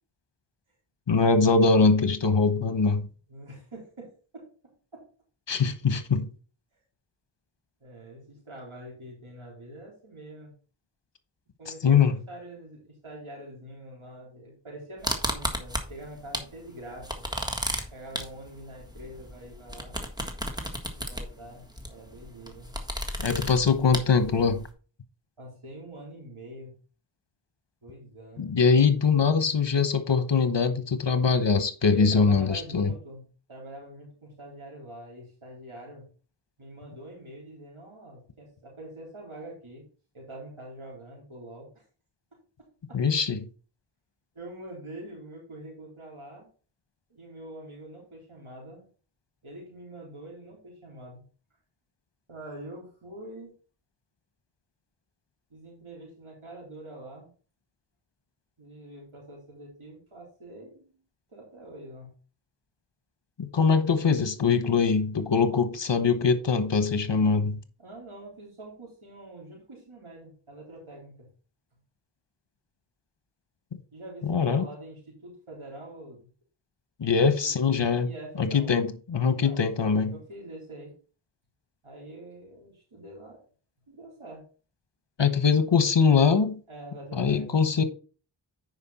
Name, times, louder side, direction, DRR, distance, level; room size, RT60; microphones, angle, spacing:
voice 1, 1.1-3.1 5.5-6.3 11.8-12.1 23.2-24.6 28.4-32.9 42.9-43.4 63.4-67.6 74.2-74.7 77.0-78.1 78.4-80.1 85.2-86.6 87.1-87.8, left 5 dB, 60° left, 1.0 m, -22 dB
voice 2, 2.2-2.7 3.3-4.5 4.9-5.1 7.8-10.6 11.6-17.3 17.9-20.0 20.9-22.8 25.4-26.8 27.8-28.5 31.8-36.1 36.6-39.9 40.1-41.8 42.9-43.0 44.3-46.5 47.1-48.9 49.4-51.3 52.3-53.5 55.5-57.3 58.6-61.0 61.3-62.1 67.8-71.3 73.9-76.3 77.3-78.7 79.2-79.6 80.1-81.0 81.8-83.4 83.9-84.5 86.7-87.6, right 1 dB, 85° right, 3.6 m, -45 dB
sound 1, 15.0-16.5 16.8-24.7, equal, 10° right, 1.6 m, -33 dB
9.4 x 5.2 x 4.1 m
wide cardioid pair, 50°, 48 cm